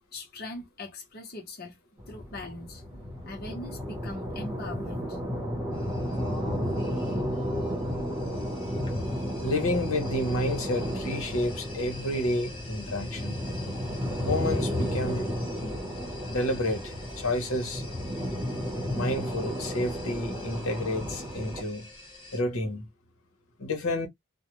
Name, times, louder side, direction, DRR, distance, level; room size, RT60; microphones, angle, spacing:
voice 1, 0.1-1.8 2.1-5.2, left 2 dB, 45° left, 0.8 m, -41 dB
sound 1, 2.0-21.6, equal, 10° right, 1.0 m, -33 dB
sound 2, 5.7-22.4, left 1 dB, 20° left, 1.0 m, -46 dB
voice 2, 9.4-13.4 14.2-15.3 15.6-15.8 16.3-17.8 18.9-21.9 22.3-22.9 23.6-24.1, left 1 dB, 75° left, 0.9 m, -30 dB
2.3 x 2.1 x 3.0 m
head